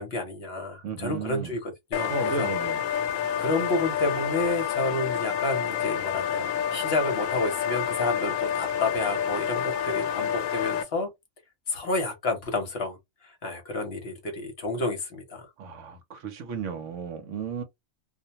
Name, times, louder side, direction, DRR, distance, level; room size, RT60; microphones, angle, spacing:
voice 1, 0.0-2.5 3.4-11.1 11.7-13.0 13.2-15.5, left 2 dB, 55° left, 0.9 m, -30 dB
voice 2, 0.8-1.5 2.1-2.8 15.6-17.6, right 5 dB, 70° right, 0.9 m, -34 dB
sound 1, 1.9-10.8, left 9 dB, 85° left, 1.0 m, -28 dB
2.4 x 2.1 x 2.8 m
omnidirectional pair, 1.4 m